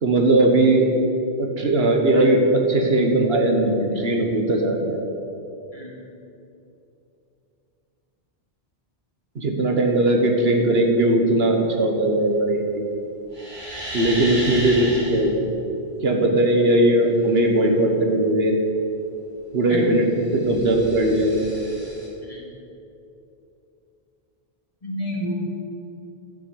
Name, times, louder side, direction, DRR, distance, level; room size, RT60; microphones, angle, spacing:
voice 1, 0.0-0.9 1.4-5.1 9.3-12.8 13.9-15.3 16.0-18.6 19.5-20.1 20.3-21.3, right 1 dB, 75° right, 2 dB, 1.6 m, -19 dB
voice 2, 5.7-6.0 19.7-19.8 22.2-22.4 24.8-25.6, left 1 dB, 35° left, -3 dB, 2.3 m, -30 dB
sound 1, 13.3-15.3 20.1-22.1, right 1 dB, 50° right, 3.3 m, -33 dB
12.5 x 6.5 x 8.0 m, 2.8 s
omnidirectional pair, 1.0 m